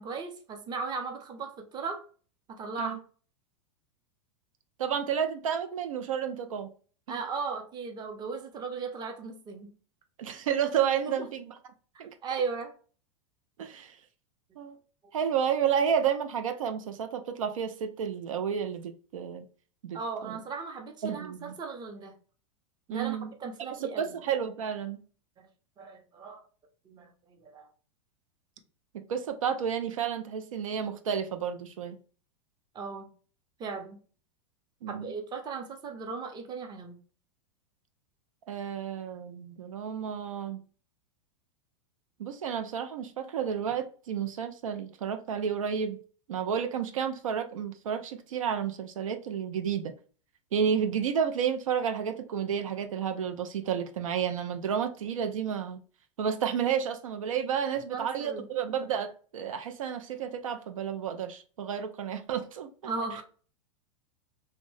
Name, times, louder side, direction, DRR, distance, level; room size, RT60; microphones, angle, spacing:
voice 1, 0.0-2.0 2.5-3.0 7.1-9.7 11.0-11.1 11.9-12.7 19.9-22.1 22.9-24.1 25.4-25.5 25.8-26.4 26.9-27.7 32.7-33.1 33.6-34.0 34.9-37.0 57.9-58.5 62.9-63.2, right 4 dB, 25° right, 0.6 m, -37 dB
voice 2, 4.8-6.7 10.2-11.5 12.0-12.1 13.6-14.0 14.6-14.8 15.1-19.5 19.8-20.4 21.0-21.6 22.9-23.3 23.8-25.0 28.9-32.0 34.8-35.1 38.5-40.6 42.2-46.0 46.3-49.9 50.5-55.8 56.2-62.7, right 8 dB, 90° right, 0.4 m, -31 dB
2.7 x 2.1 x 3.1 m
hypercardioid pair, 110°, 17 cm